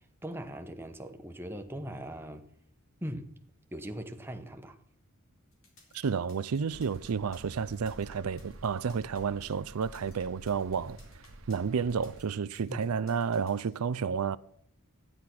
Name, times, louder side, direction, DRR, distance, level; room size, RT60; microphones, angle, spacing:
voice 1, 0.2-2.5 3.0-3.3 3.7-4.8 12.7-12.9, equal, 10° right, 1.0 m, -40 dB
sound 1, 5.5-13.9, left 3 dB, 65° left, 4.2 m, -60 dB
voice 2, 5.9-11.0 11.5-14.4, right 6 dB, 90° right, 0.5 m, -31 dB
sound 2, 6.7-12.2, right 1 dB, 65° right, 1.1 m, -50 dB
12.5 x 10.0 x 6.0 m
head